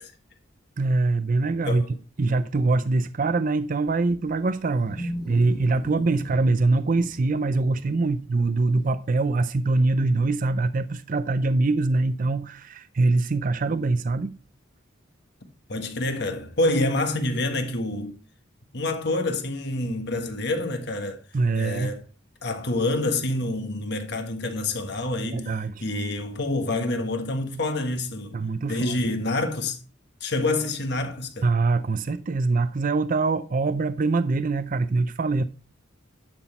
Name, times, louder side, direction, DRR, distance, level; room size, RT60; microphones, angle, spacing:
voice 1, 0.8-1.8 2.2-14.4 21.3-22.0 25.3-25.9 28.3-29.0 31.4-35.4, right 3 dB, 40° right, 0.5 m, -24 dB
Wild animals, 3.9-8.9, equal, 20° left, 1.4 m, -39 dB
voice 2, 15.7-18.1 18.7-21.2 21.6-22.0 22.4-25.5 25.8-29.8 30.2-31.5, left 2 dB, 55° left, 1.5 m, -27 dB
11.0 x 6.1 x 4.3 m
head